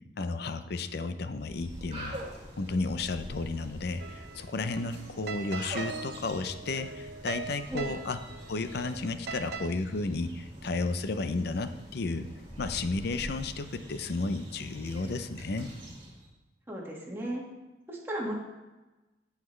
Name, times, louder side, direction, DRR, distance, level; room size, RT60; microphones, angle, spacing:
voice 1, 0.2-2.2 2.6-8.2 8.5-12.3 12.6-15.7, left 3 dB, 60° left, 10 dB, 0.5 m, -33 dB
sound 1, 1.4-16.2, right 1 dB, 30° right, 2.2 m, -45 dB
sound 2, 4.0-9.7, right 5 dB, 60° right, 0.6 m, -41 dB
voice 2, 16.7-17.4 17.9-18.3, right 1 dB, 15° right, -3 dB, 1.8 m, -35 dB
16.5 x 5.8 x 3.2 m, 1.1 s
head